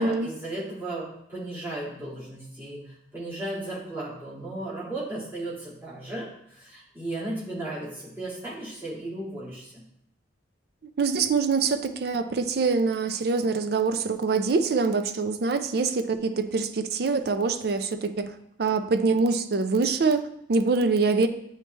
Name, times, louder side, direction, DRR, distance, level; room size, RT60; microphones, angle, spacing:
voice 1, 0.0-9.8, right 1 dB, 10° right, -9 dB, 2.3 m, -35 dB
voice 2, 11.0-18.3 18.6-21.3, right 4 dB, 55° right, 8 dB, 0.4 m, -24 dB
9.0 x 3.2 x 3.3 m, 0.73 s
head